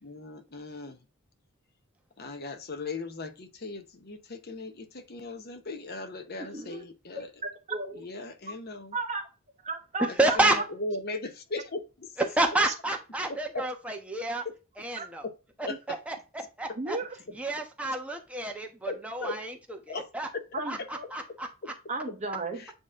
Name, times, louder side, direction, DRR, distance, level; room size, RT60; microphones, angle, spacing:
voice 1, 0.0-1.0 2.2-7.3 7.9-8.9 10.1-12.1 13.3-13.7 15.2-15.3 15.6-16.0 18.9-19.4 19.9-20.1 20.3-20.9 21.6-21.7 22.6-22.7, left 3 dB, 50° left, 0.9 m, -38 dB
voice 2, 6.5-6.8 7.4-8.1 8.9-9.2 9.6-10.4 12.6-12.7 15.0-15.1 16.8-17.2 20.5-21.0 21.9-22.6, right 3 dB, 35° right, 1.2 m, -34 dB
voice 3, 10.2-10.6 12.3-14.4 14.8-15.2 15.6-17.0 17.3-19.5 19.9-20.3 20.7-21.5, right 2 dB, 5° right, 1.0 m, -29 dB
8.9 x 3.1 x 3.6 m
head